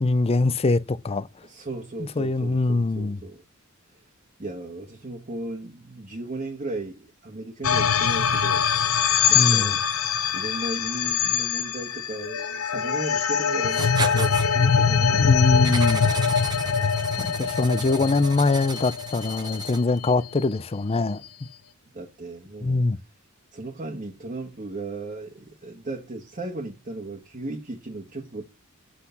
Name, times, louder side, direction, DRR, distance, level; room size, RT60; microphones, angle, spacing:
voice 1, 0.0-1.3 2.2-3.2 9.3-9.8 15.1-16.1 17.2-21.5 22.6-23.0, left 3 dB, 30° left, 0.5 m, -23 dB
voice 2, 1.4-3.4 3.9-4.0 4.4-8.7 9.3-9.8 10.3-15.3 21.9-22.8 23.5-28.4, right 2 dB, 35° right, 1.5 m, -36 dB
sound 1, 7.6-20.1, left 7 dB, 80° left, 0.8 m, -23 dB
Writing, 13.7-14.5 15.6-20.0, right 4 dB, 20° right, 1.1 m, -35 dB
8.0 x 6.0 x 7.0 m
head